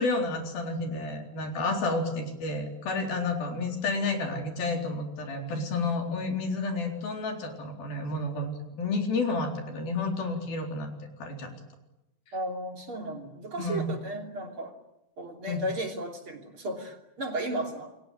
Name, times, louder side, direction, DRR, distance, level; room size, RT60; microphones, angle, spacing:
voice 1, 0.0-10.9 11.2-11.5 13.6-13.9 15.5-15.6, left 3 dB, 90° left, 3 dB, 5.8 m, -30 dB
voice 2, 12.3-14.7 15.2-17.9, right 1 dB, 40° right, 3 dB, 3.6 m, -35 dB
29.0 x 22.0 x 9.1 m, 0.90 s
omnidirectional pair, 4.1 m